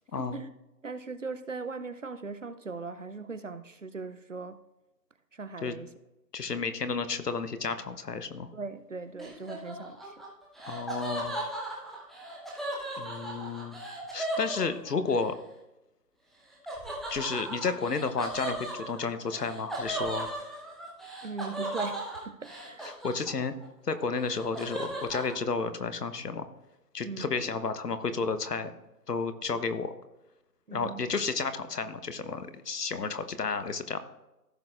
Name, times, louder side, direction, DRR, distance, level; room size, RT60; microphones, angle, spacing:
voice 1, 0.1-0.5 0.8-4.6 5.3-5.9 8.5-10.2 21.2-22.9 27.0-27.3 30.7-31.1, right 4 dB, 50° right, 0.6 m, -39 dB
voice 2, 6.3-8.5 10.7-11.4 13.0-13.8 14.1-15.4 17.1-20.3 22.8-23.5 23.8-26.5 26.9-28.7 29.1-29.9 30.7-34.0, left 4 dB, 75° left, 1.1 m, -32 dB
Laughter, 9.2-15.2 16.7-23.6 23.9-25.4, right 1 dB, ahead, 0.6 m, -37 dB
15.5 x 6.7 x 2.5 m
figure-of-eight pair, 175°, 49 cm